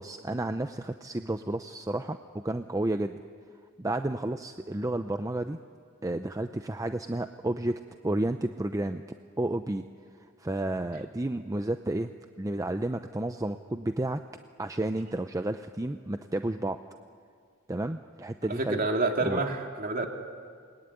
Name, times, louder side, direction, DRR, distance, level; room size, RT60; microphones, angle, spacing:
voice 1, 0.0-3.2 3.8-5.6 6.0-9.0 9.4-9.8 10.4-12.1 12.4-14.2 14.6-16.8 17.7-18.8 19.2-19.4, right 1 dB, 15° right, 8 dB, 0.6 m, -31 dB
voice 2, 18.5-20.1, right 2 dB, 45° right, 3 dB, 2.8 m, -28 dB
28.0 x 21.5 x 9.8 m, 2.1 s
head